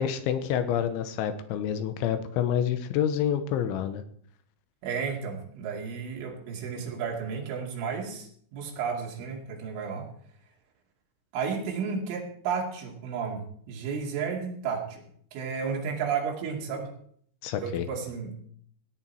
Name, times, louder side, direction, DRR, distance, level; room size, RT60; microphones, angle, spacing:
voice 1, 0.0-4.0 17.4-17.9, left 9 dB, 85° left, 10 dB, 3.3 m, -28 dB
voice 2, 4.8-10.1 11.3-16.9 17.6-18.3, right 6 dB, 85° right, 0 dB, 4.9 m, -33 dB
17.5 x 10.0 x 4.6 m, 0.62 s
omnidirectional pair, 5.5 m